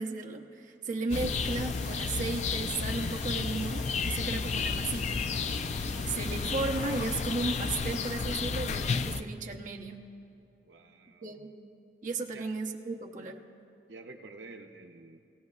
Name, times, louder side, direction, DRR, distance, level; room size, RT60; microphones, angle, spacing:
voice 1, 0.0-5.2 5.6-5.7 6.0-10.0 11.2-11.5 12.0-13.4, right 3 dB, 45° right, 1 dB, 0.8 m, -35 dB
sound 1, 1.1-9.2, left 4 dB, 40° left, 0.4 m, -32 dB
sound 2, 1.1-8.1, right 1 dB, 5° left, 3.0 m, -48 dB
voice 2, 10.6-11.4 12.3-12.5 13.9-15.2, right 3 dB, 80° right, 4 dB, 0.6 m, -49 dB
19.0 x 17.5 x 2.4 m, 2.6 s
head